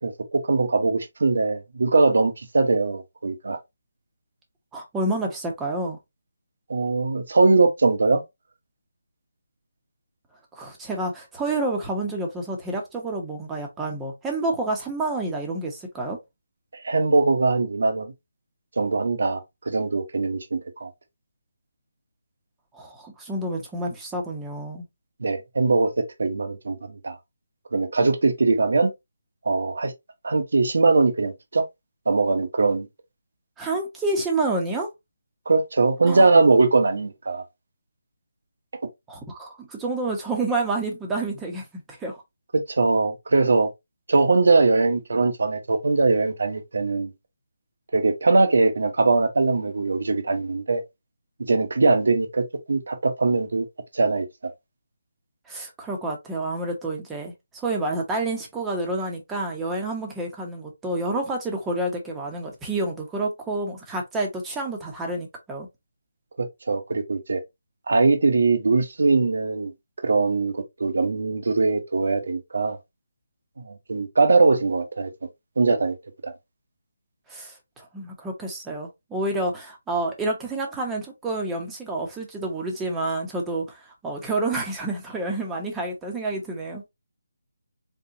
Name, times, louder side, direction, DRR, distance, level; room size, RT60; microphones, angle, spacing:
voice 1, 0.0-3.6 6.7-8.2 16.7-18.1 18.8-20.9 25.2-27.2 27.7-28.9 29.4-29.9 30.2-31.7 32.1-32.9 35.5-37.4 42.5-43.7 44.1-47.1 47.9-50.8 51.4-53.6 53.9-54.5 66.4-67.4 67.9-69.7 70.0-72.8 73.7-75.1 75.6-76.0 76.2-76.3, right 3 dB, 70° right, 1.1 m, -21 dB
voice 2, 4.7-6.0 10.5-16.2 22.7-24.8 33.6-34.9 36.1-36.3 39.1-42.2 55.5-65.7 77.3-86.8, right 2 dB, 10° right, 1.0 m, -29 dB
3.8 x 3.5 x 2.8 m
figure-of-eight pair, 160°, 0 cm